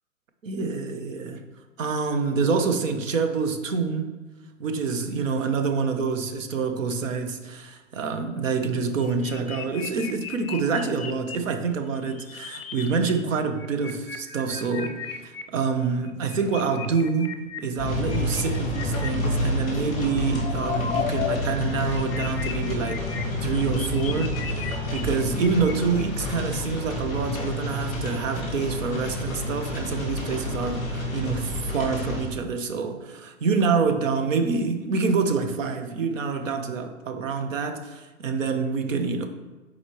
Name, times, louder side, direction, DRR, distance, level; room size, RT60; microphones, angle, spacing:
voice 1, 0.4-1.5 1.8-4.2 4.6-7.7 8.0-23.1 23.4-39.3, right 5 dB, 70° right, 0.9 m, -27 dB
sound 1, 8.8-11.4 11.9-13.1 13.4-15.4 16.1-19.1 19.9-21.4 21.6-26.0, left 8 dB, 45° left, 0.6 m, -35 dB
sound 2, 17.8-32.3, left 1 dB, ahead, 0.5 m, -29 dB
7.4 x 4.3 x 3.1 m
hypercardioid pair, 170°, 41 cm